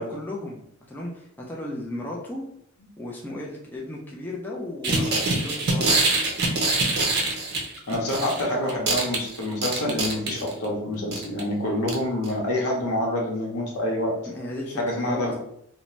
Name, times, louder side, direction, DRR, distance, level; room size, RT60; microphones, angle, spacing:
voice 1, 0.0-2.5 3.0-6.0 14.2-15.3, left 1 dB, 10° left, -3 dB, 0.3 m, -35 dB
sound 1, 4.8-8.4 8.7-10.6 11.1-11.4 11.9-12.0 12.2-12.3, right 3 dB, 45° right, 0.5 m, -24 dB
voice 2, 7.9-14.1 14.8-15.3, left 1 dB, 90° left, -1 dB, 0.8 m, -27 dB
2.6 x 2.1 x 3.0 m, 0.76 s
head